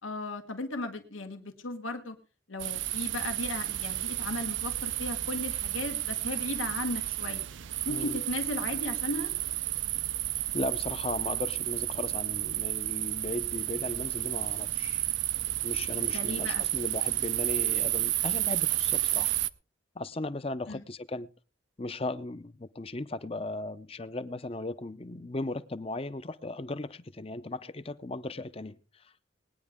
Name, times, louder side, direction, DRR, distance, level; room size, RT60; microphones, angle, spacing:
voice 1, 0.0-2.2 2.5-7.5 7.8-9.3 16.1-16.6 20.7-20.8, left 2 dB, 85° left, 1.6 m, -36 dB
sound 1, 2.6-19.5, right 15 dB, 70° right, 0.6 m, -31 dB
voice 2, 7.9-8.2 10.5-15.0 15.6-19.4 20.0-21.3 21.8-29.3, left 2 dB, 30° left, 0.6 m, -37 dB
20.0 x 9.8 x 3.6 m
head